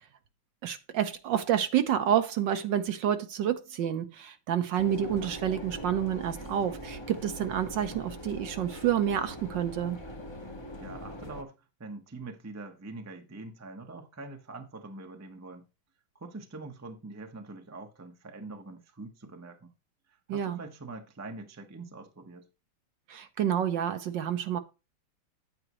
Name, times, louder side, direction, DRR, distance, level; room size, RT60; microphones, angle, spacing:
voice 1, 0.6-10.0 20.3-20.6 23.1-24.6, right 9 dB, 65° right, 1.3 m, -29 dB
sound 1, 4.8-11.4, equal, 20° left, 0.7 m, -42 dB
voice 2, 10.8-15.7 16.1-19.7 20.1-22.5, right 3 dB, 15° right, 0.6 m, -44 dB
8.9 x 8.8 x 3.1 m
omnidirectional pair, 2.3 m